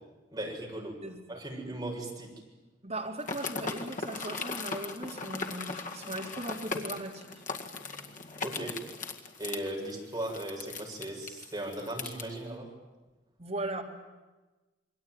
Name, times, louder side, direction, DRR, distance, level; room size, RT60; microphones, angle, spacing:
voice 1, 0.3-0.9 1.3-2.3 8.4-8.8 9.4-12.7, right 1 dB, 20° right, 0 dB, 6.6 m, -37 dB
voice 2, 1.0-1.4 2.8-7.4 13.4-13.8, right 1 dB, 35° right, 0 dB, 3.7 m, -38 dB
sound 1, 3.2-12.2, left 4 dB, 45° left, 2.1 m, -38 dB
28.0 x 23.0 x 9.4 m, 1.2 s
head